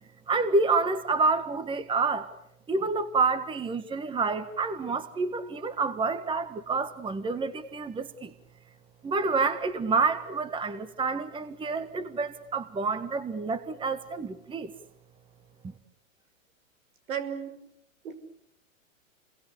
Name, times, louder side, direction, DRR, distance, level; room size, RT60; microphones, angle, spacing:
voice 1, 0.3-2.3 2.7-8.3 9.0-14.7, right 4 dB, 10° right, 12 dB, 1.6 m, -28 dB
voice 2, 17.1-17.6 18.0-18.1, right 8 dB, 75° right, 11 dB, 6.2 m, -33 dB
30.0 x 22.5 x 8.5 m, 0.80 s
hypercardioid pair, 125°, 41 cm